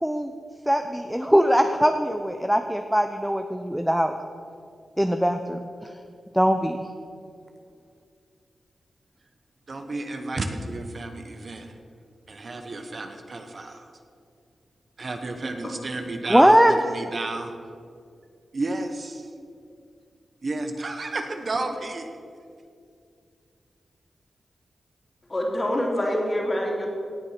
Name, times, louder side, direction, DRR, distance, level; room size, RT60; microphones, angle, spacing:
voice 1, 0.7-4.1 5.0-5.6 6.3-6.9 16.3-16.7, equal, 5° right, 6 dB, 0.6 m, -21 dB
voice 2, 9.7-11.8 12.3-13.9 15.0-17.5 18.5-19.3 20.4-22.1, right 2 dB, 45° right, 5 dB, 1.1 m, -32 dB
voice 3, 25.3-26.9, left 1 dB, 30° left, -1 dB, 2.8 m, -25 dB
17.5 x 6.9 x 5.9 m, 2.3 s
wide cardioid pair, 90°, 0 cm